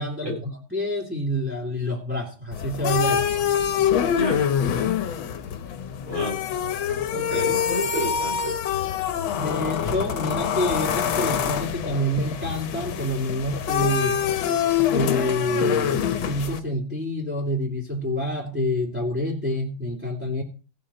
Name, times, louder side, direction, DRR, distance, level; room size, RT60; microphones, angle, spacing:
voice 1, 0.0-3.3 9.3-14.2 14.9-20.4, equal, 5° right, -3 dB, 2.5 m, -27 dB
sound 1, 2.5-16.6, left 8 dB, 75° left, 1.7 m, -25 dB
voice 2, 4.1-4.5 6.1-6.4 7.1-8.6, left 1 dB, 75° right, -2 dB, 7.1 m, -30 dB
17.0 x 6.7 x 4.3 m, 0.35 s
omnidirectional pair, 2.2 m